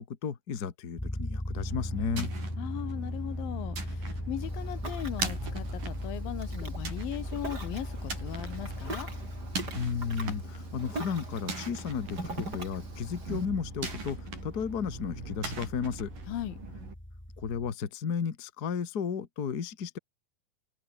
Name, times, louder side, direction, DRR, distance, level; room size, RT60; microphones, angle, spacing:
voice 1, 0.0-2.3 9.7-16.1 17.4-20.0, left 6 dB, 35° left, 1.7 m, -34 dB
sound 1, 1.0-17.7, left 1 dB, 5° left, 1.6 m, -39 dB
sound 2, 1.6-16.9, right 4 dB, 65° right, 8.4 m, -41 dB
voice 2, 2.6-9.1 16.3-16.6, left 13 dB, 80° left, 3.1 m, -38 dB
Ocean, 4.4-13.4, right 2 dB, 25° right, 7.7 m, -43 dB
open air
omnidirectional pair, 4.1 m